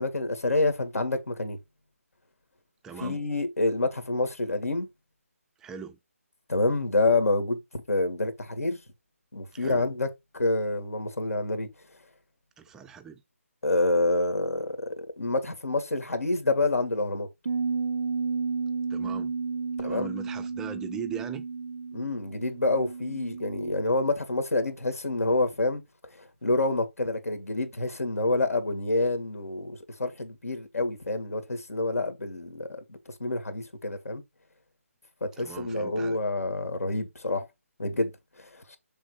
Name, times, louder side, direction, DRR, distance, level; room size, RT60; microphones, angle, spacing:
voice 1, 0.0-1.6 3.0-4.9 6.5-7.6 7.9-8.8 9.3-10.1 10.3-11.7 13.6-17.3 19.8-20.2 21.9-25.8 26.2-34.2 35.2-37.5 37.8-38.1 38.4-38.8, left 2 dB, 80° left, 1.9 m, -27 dB
voice 2, 2.8-3.2 5.6-6.0 9.5-9.9 12.6-13.2 18.9-19.3 19.8-21.5 35.4-36.2, right 7 dB, 5° right, 0.4 m, -40 dB
Bass guitar, 17.5-23.7, right 5 dB, 70° right, 0.5 m, -32 dB
7.1 x 3.6 x 4.7 m
figure-of-eight pair, 155°, 8 cm